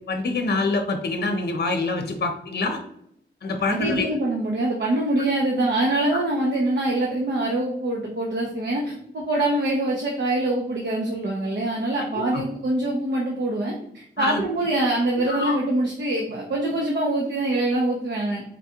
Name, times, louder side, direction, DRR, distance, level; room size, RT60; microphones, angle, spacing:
voice 1, 0.1-2.8 3.4-4.1 12.1-12.4 14.2-14.4 15.2-15.6, left 3 dB, 60° left, 5 dB, 0.7 m, -26 dB
voice 2, 3.6-18.4, right 1 dB, 65° right, -2 dB, 0.9 m, -24 dB
3.9 x 3.6 x 2.9 m, 0.71 s
wide cardioid pair, 85°, 19 cm